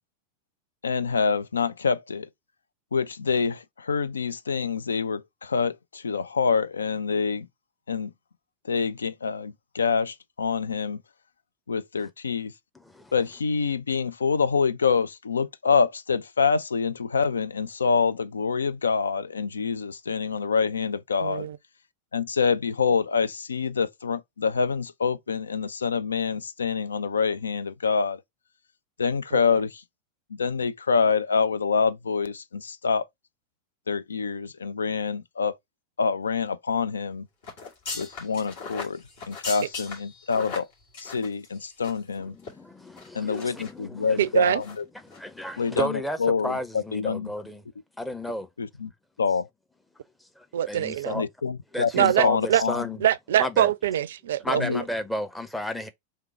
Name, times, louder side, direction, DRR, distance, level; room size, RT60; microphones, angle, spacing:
voice 1, 0.8-2.3 2.9-7.5 7.9-8.1 8.7-11.0 11.7-12.5 13.1-21.5 22.1-28.2 29.0-29.7 30.4-33.0 33.9-35.5 36.0-37.2 37.9-39.0 39.3-40.7 41.0-42.3 43.1-44.6 45.6-45.9 46.2-46.5 46.9-47.3 48.6-48.9 49.2-49.4 51.1-52.8 54.6-54.8, left 5 dB, 70° left, 0.3 m, -26 dB
voice 2, 12.7-13.1 42.2-44.3 45.0-47.6 48.0-48.5 50.4-51.2 51.7-53.0 53.4-53.7 54.4-55.9, left 1 dB, 5° left, 0.7 m, -33 dB
voice 3, 21.2-21.6 29.3-29.6 39.6-39.7 44.2-44.6 50.5-51.2 51.9-52.6 53.0-54.6, right 11 dB, 60° right, 0.4 m, -24 dB
sound 1, 37.4-42.1 42.4-42.5 43.0-43.7 44.1-44.3 44.6-44.8 45.1-45.2, left 4 dB, 55° left, 2.2 m, -38 dB
3.6 x 3.2 x 4.2 m
figure-of-eight pair, 90°, 0 cm